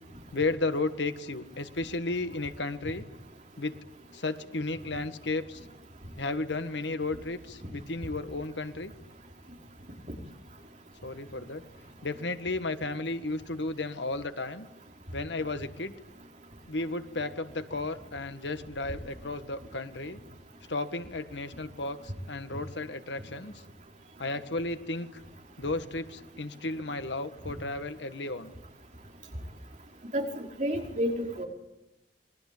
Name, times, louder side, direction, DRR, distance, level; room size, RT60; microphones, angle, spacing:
voice 1, 0.3-3.1 3.6-3.8 4.1-5.6 6.2-8.9 11.0-11.6 12.0-14.7 15.1-15.9 16.7-20.2 20.7-23.5 24.2-25.2 25.6-28.5, left 2 dB, 85° left, 10 dB, 1.7 m, -33 dB
voice 2, 30.1-31.4, equal, 45° right, 1 dB, 5.0 m, -30 dB
27.0 x 21.5 x 8.5 m, 0.94 s
head